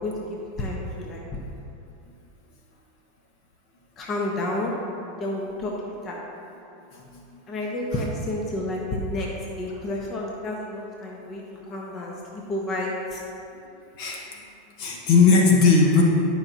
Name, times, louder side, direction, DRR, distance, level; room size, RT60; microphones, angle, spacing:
voice 1, 0.0-1.4 4.0-4.7 5.2-6.2 7.5-9.3 9.6-11.4 11.7-13.2, left 1 dB, 35° left, -2 dB, 1.1 m, -30 dB
voice 2, 6.9-7.2 14.0-14.2 14.8-16.0, left 4 dB, 60° left, -1 dB, 1.4 m, -18 dB
11.5 x 5.7 x 2.9 m, 2.8 s
hypercardioid pair, 105°, 0 cm